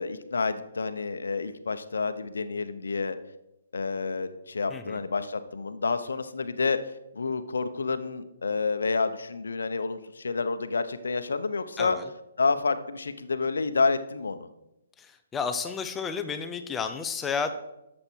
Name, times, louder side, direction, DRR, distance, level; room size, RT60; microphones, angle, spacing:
voice 1, 0.0-3.2 3.7-6.8 7.1-12.0 12.4-14.5, left 4 dB, 80° left, 11 dB, 0.9 m, -29 dB
voice 2, 4.7-5.0 11.8-12.1 15.0-17.5, left 5 dB, 15° left, 9 dB, 0.7 m, -32 dB
11.5 x 7.5 x 4.6 m, 0.90 s
hypercardioid pair, 145°, 0 cm